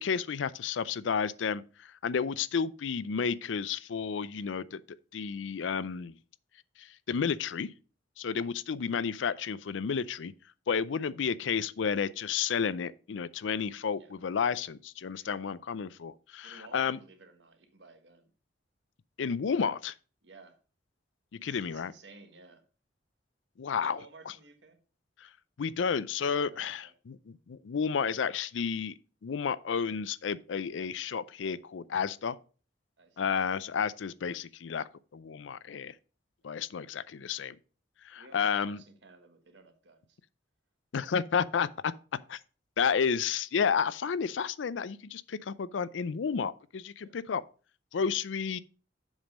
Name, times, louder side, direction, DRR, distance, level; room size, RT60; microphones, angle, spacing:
voice 1, 0.0-4.8 5.1-6.1 6.8-7.7 8.2-10.3 10.7-17.0 19.2-19.9 21.4-21.9 23.6-24.0 25.2-25.3 25.6-32.4 33.2-35.9 36.4-37.6 38.0-38.8 40.9-41.9 42.3-42.4 42.8-47.4 47.9-48.6, left 6 dB, 80° left, 0.4 m, -31 dB
voice 2, 4.2-4.6 8.2-8.6 10.9-11.0 14.0-14.2 15.1-15.5 16.4-18.3 20.2-20.6 21.4-22.6 23.8-24.8 26.5-26.9 33.0-33.2 38.1-40.2 47.0-47.2, right 3 dB, 70° right, 1.4 m, -55 dB
7.2 x 5.3 x 5.1 m
head